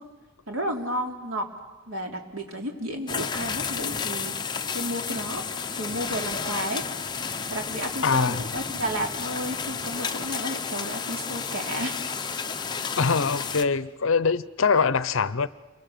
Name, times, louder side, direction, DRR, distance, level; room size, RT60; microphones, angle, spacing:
voice 1, 0.5-1.5 1.9-4.3 4.7-5.4 5.7-6.8 7.5-12.1, equal, 70° right, 3.1 m, -32 dB
sound 1, 3.1-13.6, left 6 dB, 20° left, 0.8 m, -32 dB
voice 2, 8.0-8.4 13.0-15.5, left 5 dB, 65° left, 0.7 m, -23 dB
28.5 x 23.5 x 6.8 m
head